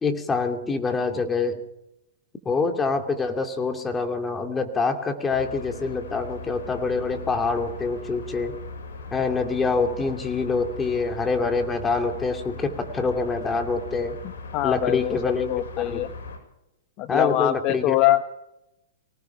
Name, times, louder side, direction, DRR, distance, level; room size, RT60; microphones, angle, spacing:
voice 1, 0.0-1.6 2.4-8.6 9.1-14.2 14.6-15.5 15.8-16.0 17.1-18.0, left 4 dB, 15° left, 6 dB, 2.6 m, -25 dB
sound 1, 5.3-16.4, left 3 dB, 75° left, 7.4 m, -39 dB
voice 2, 14.5-16.1 17.0-18.2, left 14 dB, 40° left, 11 dB, 1.0 m, -23 dB
24.0 x 18.5 x 5.8 m, 0.87 s
hypercardioid pair, 140°, 0 cm